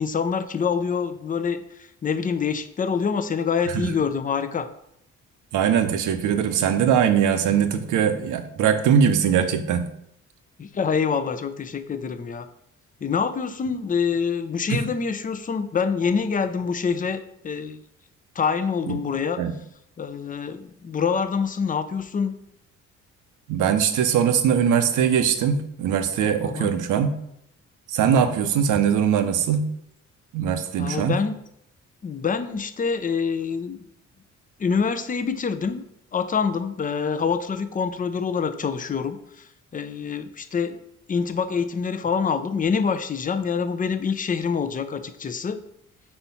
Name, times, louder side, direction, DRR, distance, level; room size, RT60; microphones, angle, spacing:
voice 1, 0.0-1.6 2.0-4.7 10.6-12.5 13.0-17.8 18.4-19.4 20.0-22.3 26.4-26.7 30.8-31.4 32.0-33.8 34.6-35.8 36.1-40.8 41.1-45.6, left 6 dB, 25° left, 10 dB, 0.6 m, -26 dB
voice 2, 5.5-9.9 14.7-14.8 18.9-19.0 19.4-19.5 23.5-27.1 27.9-29.7 30.3-31.2, right 8 dB, 85° right, 8 dB, 0.8 m, -21 dB
4.4 x 4.4 x 5.5 m, 0.76 s
cardioid pair, 90°, 30 cm